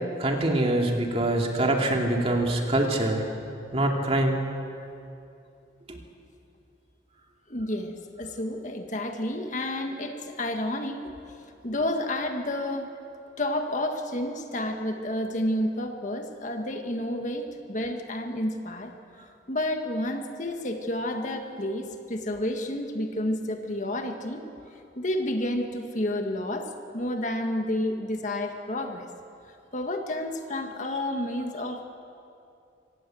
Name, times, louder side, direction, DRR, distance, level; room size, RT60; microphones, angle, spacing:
voice 1, 0.2-3.2 3.7-4.4 5.9-6.0, right 1 dB, 35° right, 1 dB, 2.6 m, -24 dB
voice 2, 7.5-7.9 8.2-11.0 11.6-12.9 13.4-18.9 19.5-24.4 25.0-29.1 29.7-31.8, left 1 dB, 45° left, 4 dB, 1.7 m, -30 dB
25.5 x 18.0 x 7.8 m, 2.6 s
head